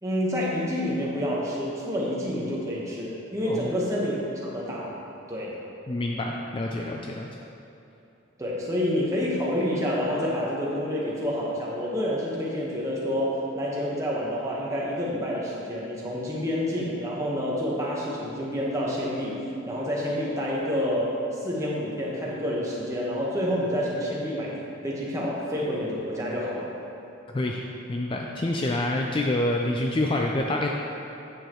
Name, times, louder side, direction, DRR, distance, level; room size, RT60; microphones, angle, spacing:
voice 1, 0.0-4.9 5.3-5.5 8.4-24.6 24.8-26.7, equal, 15° right, -5 dB, 1.1 m, -28 dB
voice 2, 3.5-3.8 5.9-7.3 27.3-27.6 27.9-30.7, left 1 dB, 25° left, 0 dB, 0.3 m, -27 dB
9.1 x 6.5 x 3.0 m, 2.9 s
head